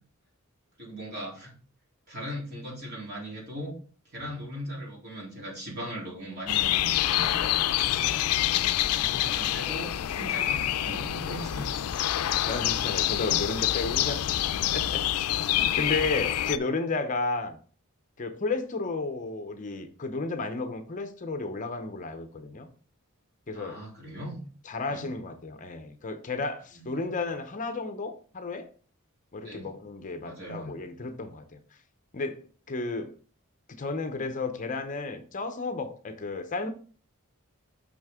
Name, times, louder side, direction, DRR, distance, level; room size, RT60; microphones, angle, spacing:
voice 1, 0.8-1.5 2.1-3.7 4.0-7.6 8.9-11.8 23.5-24.4 24.9-25.1 26.9-27.2 29.4-29.7 30.2-30.7, equal, 50° right, -3 dB, 3.4 m, -39 dB
sound 1, 6.5-16.6, left 12 dB, 85° left, 0.4 m, -27 dB
voice 2, 12.1-14.2 14.7-17.6 18.2-22.7 23.5-23.8 24.7-28.7 29.3-31.8 32.1-33.1 33.7-36.7, left 3 dB, 35° left, 7 dB, 0.6 m, -33 dB
6.2 x 5.7 x 3.6 m, 0.41 s
head